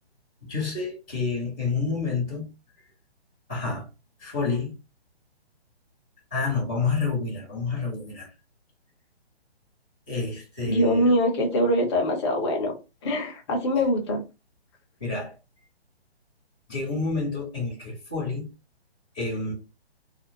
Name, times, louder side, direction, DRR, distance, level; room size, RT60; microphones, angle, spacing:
voice 1, 0.4-2.5 3.5-3.9 4.2-4.7 6.3-8.3 10.1-11.1 15.0-15.3 16.7-18.5 19.1-19.5, left 4 dB, 10° left, 0.3 m, -29 dB
voice 2, 10.7-12.7 13.0-14.2, equal, 25° left, 0.7 m, -23 dB
2.5 x 2.1 x 2.8 m
hypercardioid pair, 150°, 32 cm